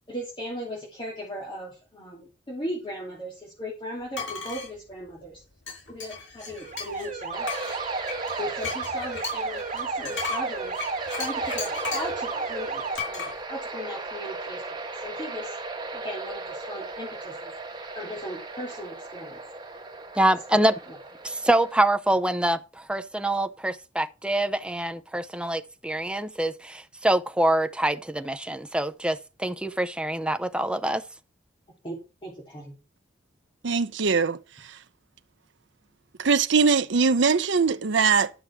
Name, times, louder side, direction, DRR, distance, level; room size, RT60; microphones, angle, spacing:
voice 1, 0.1-5.4 5.9-7.5 8.4-10.7 11.2-15.6 15.9-17.5 17.9-19.4 20.5-20.6 31.8-32.7, equal, 25° left, 3.0 m, -37 dB
sound 1, 4.1-4.7 5.7-7.1 7.4-12.2 13.0-13.3, left 6 dB, 80° left, 5.6 m, -35 dB
Alarm, 6.5-13.0, right 4 dB, 40° right, 1.8 m, -33 dB
sound 2, 7.3-21.8, right 3 dB, 25° right, 2.0 m, -37 dB
voice 2, 20.2-20.7 21.2-31.0, right 1 dB, 5° right, 0.6 m, -25 dB
voice 3, 33.6-34.8 36.2-38.3, right 5 dB, 70° right, 0.6 m, -22 dB
11.5 x 6.2 x 5.8 m
head